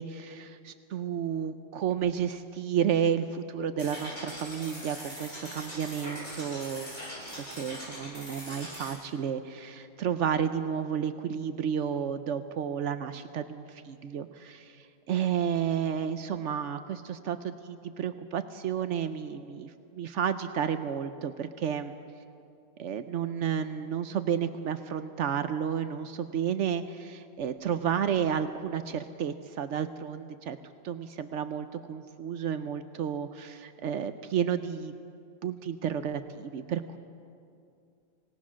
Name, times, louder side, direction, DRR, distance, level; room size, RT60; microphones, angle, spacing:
voice 1, 0.0-6.9 7.2-21.9 22.8-30.6 30.8-34.9 35.4-37.0, right 8 dB, 80° right, 10 dB, 1.0 m, -31 dB
sound 1, 3.8-8.9, equal, 85° left, 7.8 m, -41 dB
26.0 x 18.0 x 6.3 m, 2.5 s
omnidirectional pair, 1.2 m